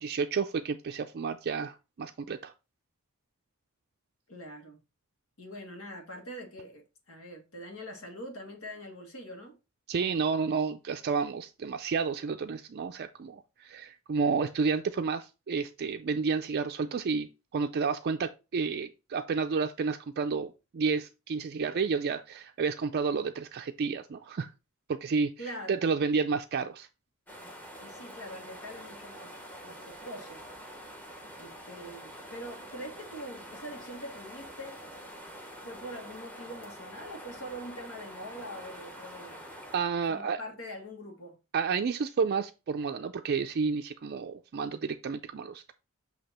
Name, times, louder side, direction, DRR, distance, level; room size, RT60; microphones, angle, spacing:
voice 1, 0.0-2.5 9.9-24.5 24.9-25.3 25.7-26.9 39.7-40.4 41.5-45.8, right 5 dB, 50° right, 0.4 m, -31 dB
voice 2, 4.3-4.8 5.4-9.6 25.4-25.8 27.8-30.4 31.4-34.8 35.6-39.4 40.1-41.4, equal, 70° left, 1.6 m, -43 dB
sound 1, 27.3-39.8, equal, 10° left, 1.0 m, -46 dB
7.8 x 2.9 x 4.2 m
head